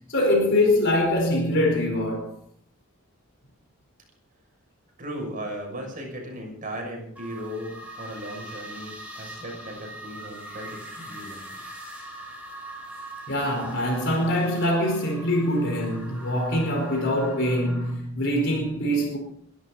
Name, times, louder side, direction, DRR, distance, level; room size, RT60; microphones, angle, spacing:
voice 1, 0.1-2.3 13.3-19.2, left 1 dB, 55° left, 4.6 m, -23 dB
voice 2, 5.0-11.6, equal, 40° right, 6.7 m, -37 dB
sound 1, 7.2-17.9, right 1 dB, 5° right, 7.0 m, -42 dB
22.5 x 12.5 x 4.1 m
head